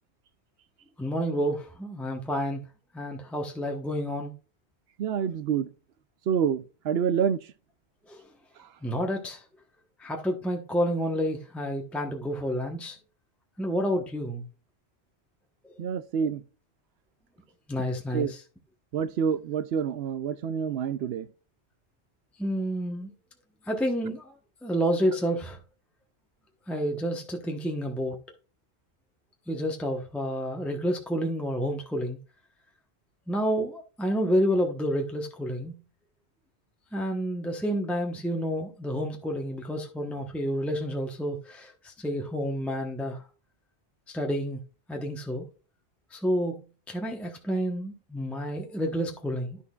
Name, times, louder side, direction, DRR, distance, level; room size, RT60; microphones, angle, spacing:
voice 1, 1.0-2.6 2.9-4.3 8.1-8.2 8.8-9.4 10.0-13.0 13.6-14.5 15.6-15.7 17.7-18.4 22.4-23.1 23.7-24.3 24.6-25.6 26.7-28.2 29.5-32.2 33.3-35.8 36.9-43.2 44.1-44.6 44.9-45.5 46.1-49.6, equal, ahead, 1.0 m, -29 dB
voice 2, 5.0-5.7 6.3-7.4 15.8-16.4 18.1-18.3 18.9-21.3, right 7 dB, 70° right, 0.8 m, -27 dB
11.0 x 6.2 x 2.4 m
omnidirectional pair, 1.2 m